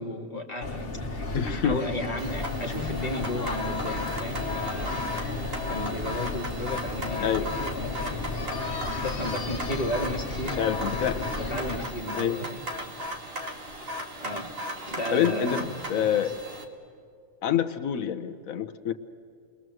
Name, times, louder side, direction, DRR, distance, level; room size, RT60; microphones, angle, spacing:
voice 1, 0.0-5.1 5.7-8.3 9.0-10.7 11.2-12.7 14.2-14.6 14.9-16.3, left 1 dB, 30° left, 3 dB, 2.2 m, -34 dB
sound 1, 0.6-11.9, left 3 dB, 45° left, 1.7 m, -33 dB
sound 2, 0.8-16.0, right 1 dB, 80° right, 5.4 m, -51 dB
voice 2, 1.3-1.8 7.2-7.5 10.6-11.2 12.1-12.4 15.1-16.3 17.4-18.9, left 8 dB, 85° left, 8 dB, 1.3 m, -27 dB
sound 3, 2.2-16.6, left 1 dB, 45° right, 2.2 m, -36 dB
29.0 x 21.5 x 7.8 m, 2.5 s
omnidirectional pair, 1.4 m